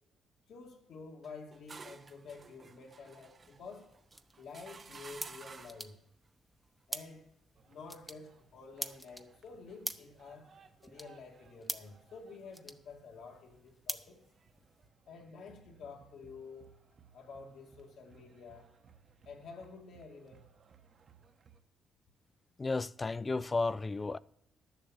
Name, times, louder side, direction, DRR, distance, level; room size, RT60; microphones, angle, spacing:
voice 1, 0.5-3.9 4.4-6.0 6.9-7.3 7.7-10.5 10.8-14.2 15.1-16.7 17.1-18.7 19.3-20.5, left 4 dB, 70° left, 2.1 m, -50 dB
sound 1, 1.2-5.9, right 4 dB, 35° right, 0.6 m, -53 dB
sound 2, 3.4-14.9, equal, ahead, 0.8 m, -47 dB
sound 3, 7.5-21.6, right 6 dB, 50° right, 1.1 m, -64 dB
voice 2, 22.6-24.2, left 3 dB, 25° left, 0.4 m, -33 dB
11.0 x 7.2 x 7.1 m
cardioid pair, 90°, 0 cm